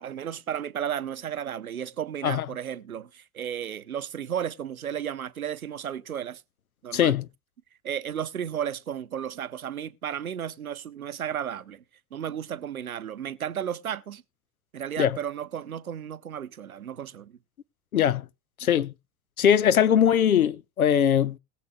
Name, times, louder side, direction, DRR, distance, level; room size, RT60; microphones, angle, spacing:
voice 1, 0.0-6.4 6.8-7.1 7.8-11.8 12.1-14.2 14.7-17.4, right 9 dB, 85° right, 0.7 m, -33 dB
voice 2, 6.9-7.2 15.0-15.2 17.9-18.3 18.6-18.9 19.4-21.4, left 9 dB, 85° left, 0.6 m, -21 dB
21.0 x 7.4 x 2.4 m
figure-of-eight pair, 65°, 41 cm